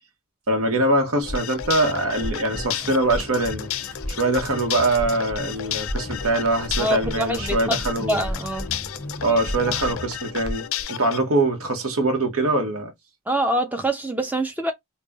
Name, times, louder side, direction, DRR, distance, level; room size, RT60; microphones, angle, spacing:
voice 1, 0.5-3.7 4.1-8.2 9.2-12.9, right 2 dB, 80° right, 1.0 m, -23 dB
sound 1, 1.2-11.2, left 11 dB, 70° left, 0.4 m, -33 dB
sound 2, 1.2-1.7 2.0-2.8 3.0-3.6 4.0-4.5 4.8-10.0 10.2-10.8, equal, 30° right, 1.3 m, -33 dB
sound 3, 1.7-10.2, left 1 dB, 10° left, 1.0 m, -39 dB
voice 2, 6.8-7.8 8.1-8.7 13.3-14.7, right 1 dB, 10° right, 0.6 m, -25 dB
3.5 x 2.3 x 4.0 m
head